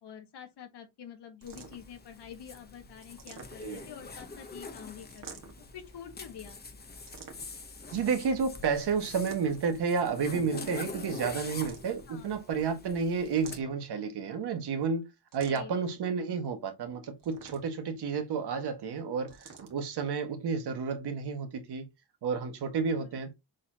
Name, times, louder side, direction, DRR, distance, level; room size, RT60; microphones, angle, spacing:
voice 1, 0.0-6.8 12.1-12.4 15.5-15.7 23.0-23.1, left 8 dB, 85° left, 2.0 m, -47 dB
Zipper (clothing), 1.4-13.6, left 3 dB, 25° left, 0.9 m, -45 dB
sound 1, 1.4-2.0 3.0-3.9 5.1-5.7 7.1-7.7 9.0-9.8 11.4-12.1 13.3-14.0 15.3-15.9 17.2-17.9 19.3-19.8, right 5 dB, 55° right, 1.8 m, -49 dB
voice 2, 7.9-15.1 15.3-21.9 22.2-23.3, right 5 dB, 75° right, 1.8 m, -31 dB
7.2 x 4.5 x 2.9 m
wide cardioid pair, 180°, 40 cm